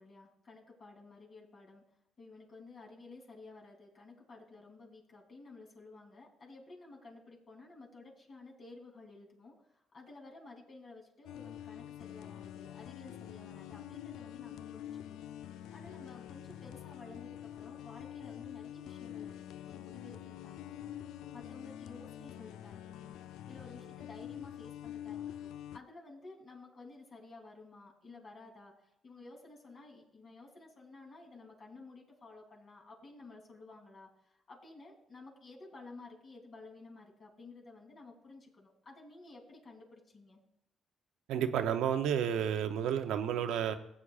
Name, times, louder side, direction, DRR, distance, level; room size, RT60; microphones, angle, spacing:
voice 1, 0.0-1.8 2.2-9.5 9.9-15.2 15.7-21.0 21.3-23.2 23.5-28.7 29.0-40.4, left 3 dB, 50° left, 0 dB, 3.1 m, -53 dB
sound 1, 11.3-25.8, left 11 dB, 90° left, 0.3 m, -46 dB
voice 2, 41.3-43.7, right 9 dB, 90° right, 8 dB, 0.7 m, -31 dB
15.5 x 8.4 x 2.4 m, 0.80 s
cardioid pair, 90°, 0 cm